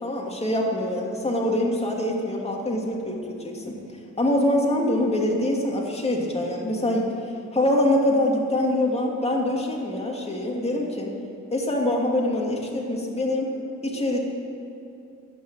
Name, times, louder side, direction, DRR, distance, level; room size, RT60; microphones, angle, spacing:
voice 1, 0.0-3.8 4.2-7.1 7.5-11.1 11.5-13.5 13.8-14.2, left 1 dB, 20° left, -1 dB, 2.6 m, -24 dB
11.5 x 9.0 x 9.1 m, 2.8 s
cardioid pair, 90°, 30 cm